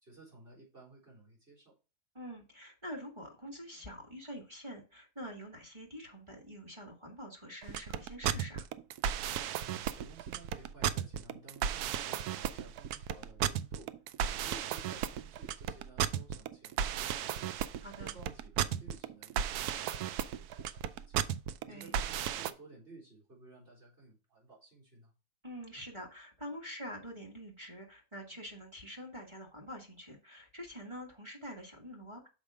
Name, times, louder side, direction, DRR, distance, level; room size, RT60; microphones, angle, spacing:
voice 1, 0.0-1.7 9.6-13.9 14.3-17.6 18.0-21.3 21.6-25.1, right 3 dB, 35° right, -5 dB, 4.2 m, -55 dB
voice 2, 2.1-8.7 17.8-18.2 21.7-21.9 25.4-32.3, equal, 20° right, 0 dB, 1.8 m, -46 dB
sound 1, 7.6-22.5, right 9 dB, 80° right, 1.1 m, -34 dB
6.5 x 5.0 x 4.8 m, 0.32 s
omnidirectional pair, 1.6 m